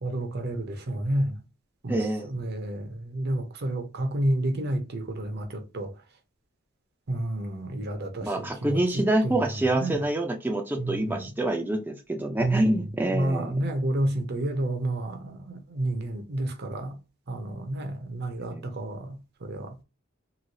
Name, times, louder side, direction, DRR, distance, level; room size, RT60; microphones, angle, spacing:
voice 1, 0.0-1.4 1.8-5.9 7.1-9.4 9.7-10.0 10.8-11.3 12.4-12.8 13.1-16.9 17.3-19.8, right 1 dB, 55° right, 0.6 m, -30 dB
voice 2, 1.9-2.3 8.2-13.6 18.5-18.7, right 1 dB, 10° right, 0.4 m, -26 dB
3.1 x 2.7 x 2.7 m
head